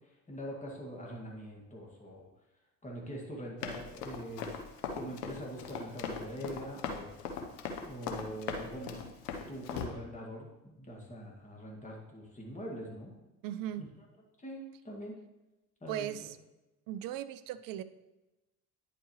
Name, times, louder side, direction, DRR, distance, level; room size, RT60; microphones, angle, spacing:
voice 1, 0.3-2.3 2.8-4.5 4.9-7.2 7.8-9.0 9.5-13.1 13.8-13.9 14.4-15.2 15.8-16.1, equal, 15° left, -2 dB, 2.0 m, -43 dB
Run, 3.6-9.9, left 5 dB, 75° left, 1.0 m, -39 dB
voice 2, 13.4-13.9 15.9-16.4 16.9-17.8, right 11 dB, 45° right, 13 dB, 0.5 m, -38 dB
9.7 x 4.8 x 3.2 m, 1.0 s
hypercardioid pair, 60°, 48 cm